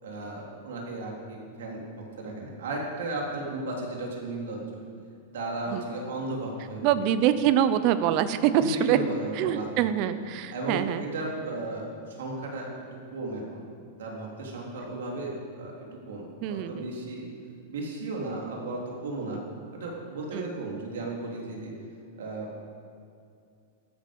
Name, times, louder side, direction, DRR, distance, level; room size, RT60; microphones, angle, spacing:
voice 1, 0.0-4.6 5.3-6.8 8.5-9.7 10.5-12.7 13.1-13.6 14.0-17.3 17.7-19.4 19.7-21.7 22.2-22.7, right 2 dB, 90° right, -2 dB, 3.5 m, -35 dB
voice 2, 6.8-9.0 9.3-11.0 16.4-16.9 19.3-19.4 20.3-20.5, right 10 dB, 30° right, 12 dB, 0.6 m, -25 dB
14.0 x 12.5 x 5.4 m, 2.4 s
supercardioid pair, 180°, 0 cm